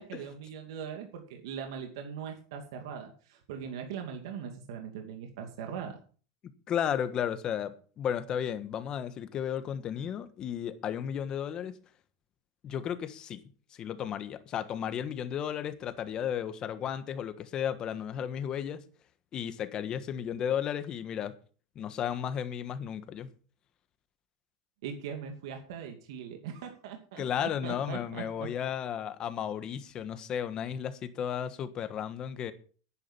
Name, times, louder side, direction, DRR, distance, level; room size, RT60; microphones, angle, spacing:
voice 1, 0.0-6.0 24.8-28.5, right 7 dB, 75° right, 2.5 m, -40 dB
voice 2, 6.7-11.8 12.6-13.4 13.7-18.8 19.3-21.3 21.7-23.3 27.2-32.5, left 9 dB, 30° left, 1.4 m, -34 dB
10.5 x 10.0 x 5.6 m
supercardioid pair, 145°, 3 cm